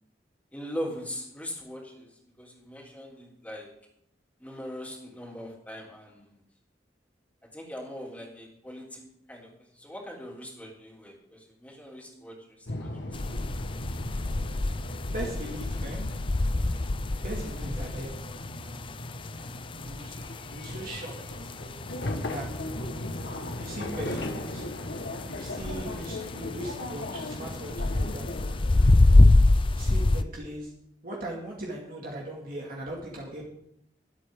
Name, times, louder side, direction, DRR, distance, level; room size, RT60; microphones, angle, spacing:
voice 1, 0.5-2.1 2.4-3.7 4.4-6.4 7.5-9.0 9.3-12.9 13.2-13.4 16.7-16.8, equal, 10° left, -2 dB, 3.5 m, -40 dB
sound 1, 12.7-29.2, left 1 dB, 90° left, 1.7 m, -37 dB
sound 2, 13.1-30.2, left 2 dB, 30° left, 0.5 m, -25 dB
voice 2, 15.1-16.0 17.2-18.1 19.8-20.1 20.5-21.1 22.3-22.5 23.6-24.6 25.4-28.3 29.8-30.7 31.0-33.4, right 1 dB, 55° right, -3 dB, 2.5 m, -38 dB
23.5 x 8.4 x 3.9 m, 0.74 s
head